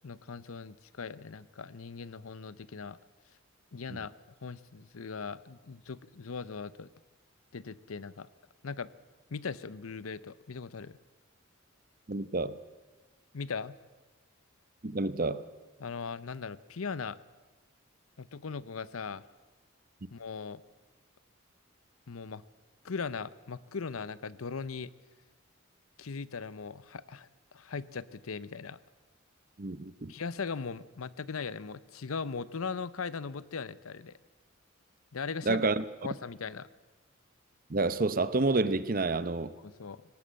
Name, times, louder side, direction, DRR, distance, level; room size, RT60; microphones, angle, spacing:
voice 1, 0.0-3.0 3.7-4.1 4.4-6.9 7.5-8.3 8.6-8.9 9.3-11.0 13.3-13.8 15.8-17.2 18.2-19.2 20.1-20.6 22.1-22.4 22.8-24.9 26.0-28.8 30.1-34.2 35.1-35.7 36.0-36.7 39.6-40.0, left 5 dB, 85° left, 0.7 m, -39 dB
voice 2, 12.1-12.6 14.8-15.4 29.6-30.1 35.5-35.8 37.7-39.5, right 3 dB, 40° right, 0.8 m, -29 dB
19.5 x 18.0 x 7.6 m
head